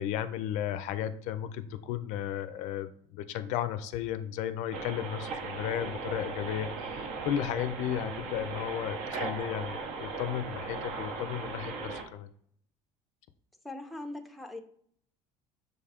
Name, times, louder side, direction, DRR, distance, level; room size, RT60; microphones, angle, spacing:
voice 1, 0.0-12.3, left 10 dB, 65° left, 12 dB, 0.4 m, -34 dB
sound 1, 4.7-12.0, right 4 dB, 60° right, 0.7 m, -38 dB
voice 2, 13.6-14.6, left 2 dB, ahead, 5 dB, 0.5 m, -40 dB
6.3 x 2.3 x 3.5 m, 0.64 s
supercardioid pair, 105°, 13 cm